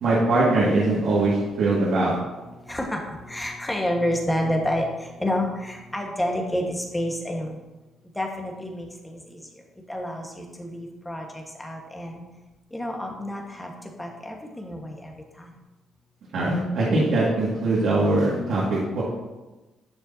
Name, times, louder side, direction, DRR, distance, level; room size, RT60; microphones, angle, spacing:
voice 1, 0.0-2.2 16.3-19.0, right 2 dB, 75° right, -7 dB, 2.1 m, -22 dB
voice 2, 2.7-7.6 8.1-9.4 9.9-12.2 12.7-13.7 14.0-15.1 15.4-15.5, left 1 dB, 10° left, 1 dB, 1.4 m, -29 dB
9.7 x 6.7 x 2.8 m, 1.1 s
cardioid pair, 90°, 0 cm